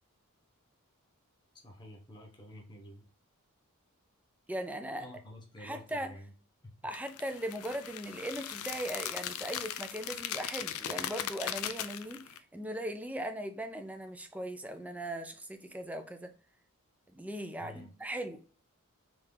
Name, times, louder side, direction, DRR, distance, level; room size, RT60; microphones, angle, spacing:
voice 1, 1.6-3.0 5.0-6.3 6.6-6.7 17.6-17.9, left 1 dB, 20° left, 0.9 m, -49 dB
voice 2, 4.5-5.1 5.6-6.1 6.8-16.3 17.1-18.4, right 1 dB, 5° right, 0.5 m, -39 dB
sound 1, 6.9-12.4, left 10 dB, 70° left, 0.4 m, -39 dB
3.5 x 3.3 x 3.8 m
head